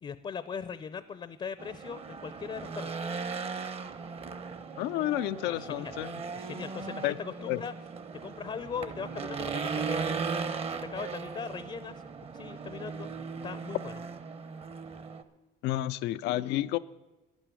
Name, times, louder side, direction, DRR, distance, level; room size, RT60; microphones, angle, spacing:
voice 1, 0.0-2.9 5.5-6.0 6.3-7.7 8.2-10.1 10.7-12.0 12.3-14.0, left 6 dB, 35° left, 14 dB, 0.5 m, -40 dB
Race car auto racing / Engine, 1.6-15.2, right 5 dB, 35° right, 0.9 m, -37 dB
voice 2, 4.8-6.2 7.0-7.2 7.4-7.6 15.6-16.8, left 15 dB, 90° left, 11 dB, 0.5 m, -30 dB
11.0 x 9.0 x 8.3 m, 1.1 s
cardioid pair, 110°, 17 cm